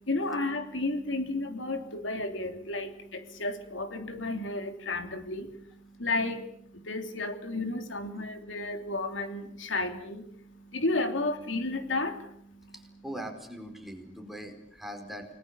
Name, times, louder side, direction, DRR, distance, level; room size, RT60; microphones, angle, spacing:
voice 1, 0.0-13.0, left 2 dB, 90° left, 6 dB, 3.1 m, -33 dB
voice 2, 12.7-15.3, equal, ahead, 4 dB, 4.7 m, -41 dB
29.5 x 20.5 x 7.2 m, 0.72 s
head